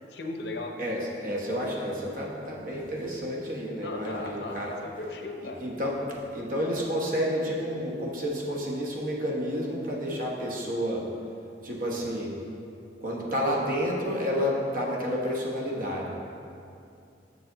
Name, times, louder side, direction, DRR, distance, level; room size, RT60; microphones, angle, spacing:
voice 1, 0.1-0.8 3.8-5.6, left 2 dB, 70° left, 3 dB, 0.7 m, -36 dB
voice 2, 0.8-4.7 5.6-5.9 6.3-11.1 11.6-12.3 13.0-16.1, equal, 50° right, -2 dB, 1.1 m, -30 dB
6.9 x 6.6 x 3.9 m, 2.6 s
head